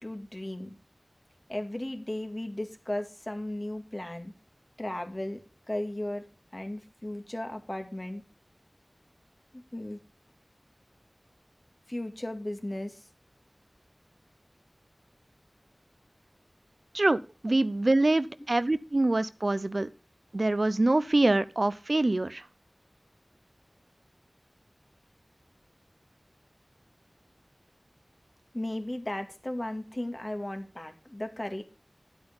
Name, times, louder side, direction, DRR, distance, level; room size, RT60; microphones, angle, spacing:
voice 1, 0.0-0.8 1.5-4.3 4.8-5.4 5.7-6.2 6.5-8.2 9.5-10.0 11.9-13.0 28.5-31.6, left 1 dB, 35° left, 2.2 m, -35 dB
voice 2, 16.9-19.9 20.3-22.4, right 2 dB, 65° right, 0.6 m, -25 dB
11.0 x 8.1 x 5.2 m
wide cardioid pair, 40°, 0 cm